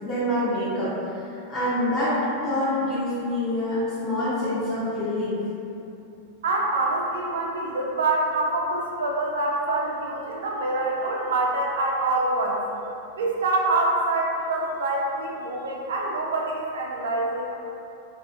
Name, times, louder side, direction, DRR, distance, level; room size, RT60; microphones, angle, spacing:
voice 1, 0.0-0.9 1.5-2.2 2.4-5.3, left 1 dB, 30° left, -12 dB, 0.6 m, -26 dB
voice 2, 6.4-12.6 13.2-17.5, right 2 dB, 60° right, -1 dB, 0.3 m, -25 dB
2.4 x 2.3 x 2.4 m, 2.8 s
figure-of-eight pair, 90°, 0 cm